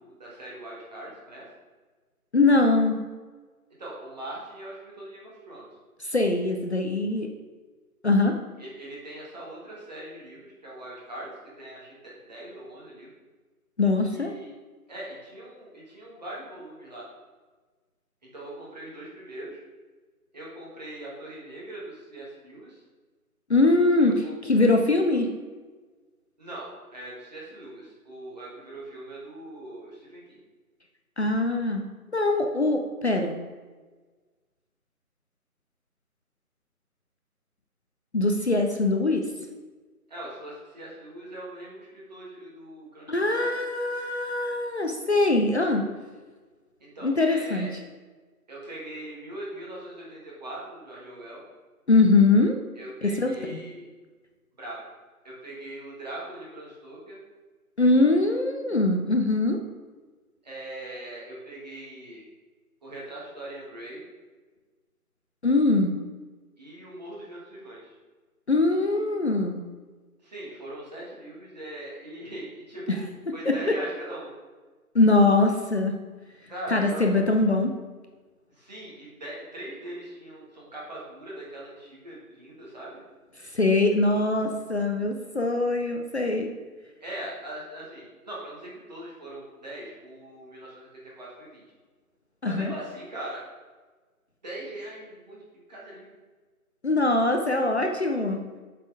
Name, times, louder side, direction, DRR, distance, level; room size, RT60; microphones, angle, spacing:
voice 1, 0.0-1.5 3.8-5.7 8.6-11.3 11.6-13.1 14.1-14.5 14.9-17.0 18.3-19.6 20.3-22.8 24.0-24.3 26.4-30.4 40.1-43.5 46.8-47.7 48.5-51.4 52.7-53.9 54.6-54.8 55.2-57.2 60.4-62.2 62.8-64.0 66.6-67.9 70.2-74.3 76.5-77.1 78.5-83.0 87.0-91.6 92.4-93.4 94.4-96.1, right 1 dB, 30° right, -5 dB, 1.6 m, -41 dB
voice 2, 2.3-3.0 6.0-7.3 8.0-8.3 13.8-14.3 23.5-25.3 31.2-31.9 32.1-33.3 38.1-39.3 43.1-45.9 47.0-47.7 51.9-52.6 53.2-53.6 57.8-59.6 65.4-65.9 68.5-69.6 73.5-73.6 74.9-76.0 76.7-77.7 83.4-86.5 92.4-92.7 96.8-98.4, left 2 dB, 45° left, 3 dB, 0.6 m, -22 dB
7.5 x 4.2 x 4.8 m, 1.4 s
figure-of-eight pair, 160°, 45 cm